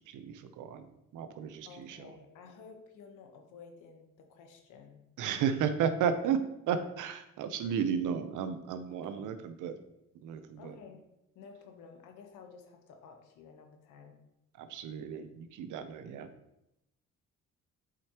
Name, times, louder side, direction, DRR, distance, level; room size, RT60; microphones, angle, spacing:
voice 1, 0.1-0.9 1.1-2.1 5.2-6.4 6.7-9.8 10.2-10.8 14.5-16.3, right 7 dB, 85° right, 9 dB, 0.7 m, -33 dB
voice 2, 1.7-5.0 8.9-9.3 10.6-11.0 11.3-14.2, left 5 dB, 90° left, 4 dB, 1.1 m, -53 dB
7.6 x 5.0 x 3.0 m, 0.87 s
cardioid pair, 90°, 30 cm